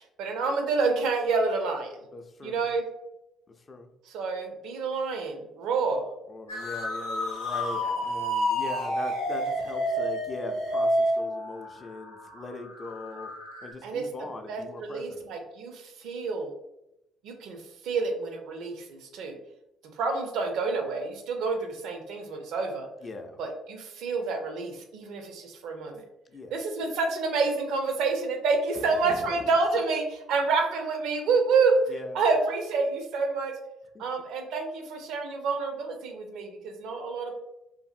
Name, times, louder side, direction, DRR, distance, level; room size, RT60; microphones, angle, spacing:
voice 1, 0.2-2.0 2.4-2.9 4.1-6.1 7.8-8.0 13.8-14.1 14.5-16.5 17.2-17.6 17.8-19.4 20.0-22.9 23.4-26.0 26.5-31.8 32.1-33.5 34.0-37.3, right 4 dB, 65° right, 4 dB, 0.4 m, -28 dB
voice 2, 2.1-2.7 3.5-3.9 6.3-13.3 13.6-15.3 23.0-23.4 26.3-26.6 28.7-29.3 31.9-32.3 33.9-34.0, left 3 dB, 35° left, 4 dB, 0.4 m, -40 dB
sound 1, 6.5-13.7, equal, 85° left, 0.7 m, -30 dB
2.6 x 2.5 x 2.4 m, 0.89 s
hypercardioid pair, 50°, 0 cm